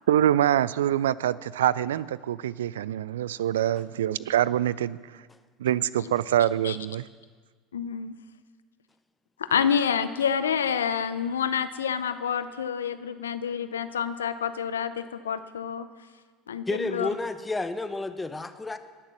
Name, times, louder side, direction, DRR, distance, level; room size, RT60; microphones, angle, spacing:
voice 1, 0.1-5.0 5.6-7.0, right 11 dB, 80° right, 20 dB, 0.3 m, -25 dB
voice 2, 7.7-8.2 9.4-15.9 16.5-17.1, left 7 dB, 90° left, 12 dB, 0.6 m, -28 dB
voice 3, 16.7-18.8, left 3 dB, 15° left, 10 dB, 1.0 m, -31 dB
18.5 x 6.7 x 7.2 m, 1.5 s
hypercardioid pair, 75°, 0 cm